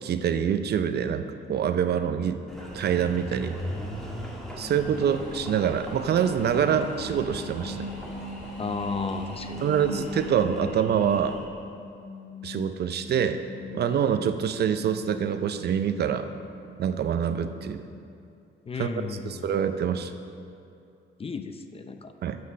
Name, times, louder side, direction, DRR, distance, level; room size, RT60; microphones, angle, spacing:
voice 1, 0.0-2.4 2.7-3.5 4.6-7.9 9.6-11.4 12.4-13.4 13.7-16.3 16.8-17.8 18.8-18.9 19.3-20.1 22.2-22.4, right 8 dB, 55° right, 9 dB, 0.5 m, -25 dB
Engine, 2.5-11.4, equal, ahead, 1.6 m, -40 dB
sound 1, 4.9-10.3, left 2 dB, 60° left, 1.9 m, -46 dB
sound 2, 6.1-11.3 11.7-17.9, left 2 dB, 35° right, 1.4 m, -41 dB
voice 2, 8.6-9.7 18.7-19.5 21.2-22.1, left 4 dB, 30° left, 8 dB, 0.5 m, -34 dB
7.4 x 6.2 x 6.3 m, 2.5 s
cardioid pair, 90°, 20 cm